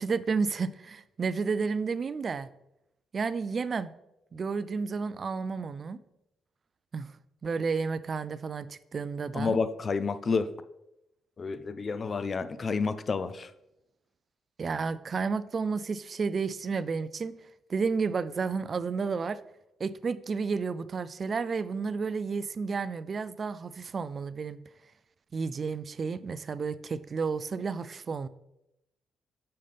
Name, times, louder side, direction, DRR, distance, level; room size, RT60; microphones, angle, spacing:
voice 1, 0.0-2.5 3.1-3.9 4.3-6.0 6.9-7.1 7.4-9.6 14.6-17.3 17.7-19.4 19.8-24.6 25.3-28.3, right 5 dB, 40° right, 15 dB, 0.4 m, -31 dB
voice 2, 9.3-10.5 11.4-13.5, left 4 dB, 40° left, 12 dB, 0.4 m, -29 dB
6.5 x 5.6 x 3.4 m, 0.85 s
cardioid pair, 90°, 0 cm